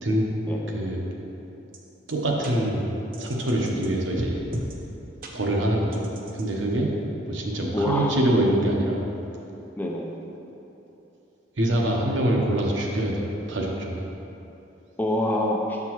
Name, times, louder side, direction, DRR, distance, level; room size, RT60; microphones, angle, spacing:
voice 1, 0.7-1.1 2.1-2.9 3.2-4.4 5.3-6.1 6.3-6.9 7.3-9.0 11.6-14.0, right 1 dB, 70° right, -1 dB, 0.8 m, -24 dB
sound 1, 1.7-1.8 2.1-2.2 2.4-2.5 3.1-3.9 4.2-4.8 5.2-5.3 5.9-6.4, right 1 dB, 45° right, 0.6 m, -34 dB
voice 2, 7.7-8.1 9.8-10.1 15.0-15.8, left 1 dB, 10° left, -1 dB, 0.4 m, -26 dB
6.7 x 5.9 x 3.0 m, 3.0 s
head